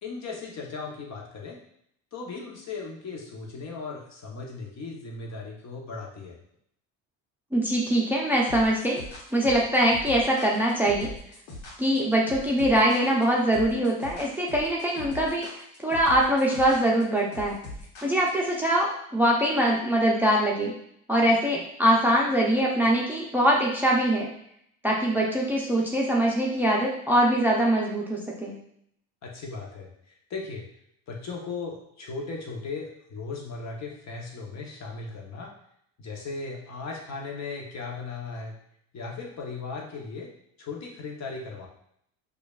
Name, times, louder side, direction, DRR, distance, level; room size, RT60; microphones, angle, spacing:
voice 1, 0.0-1.6 2.1-6.4 29.2-30.6 31.1-35.5 36.0-38.6 38.9-40.3 40.6-41.7, left 4 dB, 45° left, 0 dB, 1.0 m, -37 dB
voice 2, 7.5-9.0 9.3-11.1 11.8-15.5 15.8-17.6 18.0-20.7 21.1-24.3 24.8-28.6, right 1 dB, 5° right, -3 dB, 0.6 m, -23 dB
sound 1, 8.5-18.5, left 2 dB, 90° left, 1.1 m, -41 dB
4.9 x 2.4 x 2.4 m, 0.70 s
supercardioid pair, 90°, 37 cm